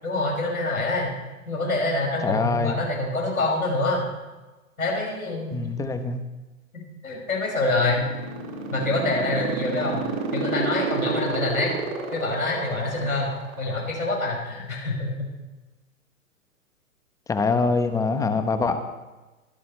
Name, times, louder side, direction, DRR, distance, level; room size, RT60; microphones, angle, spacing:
voice 1, 0.0-1.2 1.5-4.1 4.8-5.7 6.7-8.1 8.7-10.0 10.3-11.7 12.1-13.3 13.6-15.3, left 2 dB, 90° left, -2 dB, 6.4 m, -26 dB
voice 2, 2.2-2.8 5.5-6.2 17.3-18.8, left 4 dB, 10° left, 9 dB, 1.0 m, -24 dB
sound 1, 7.4-14.0, right 6 dB, 55° right, 6.7 m, -29 dB
24.0 x 12.5 x 3.3 m, 1.1 s
hypercardioid pair, 125°, 41 cm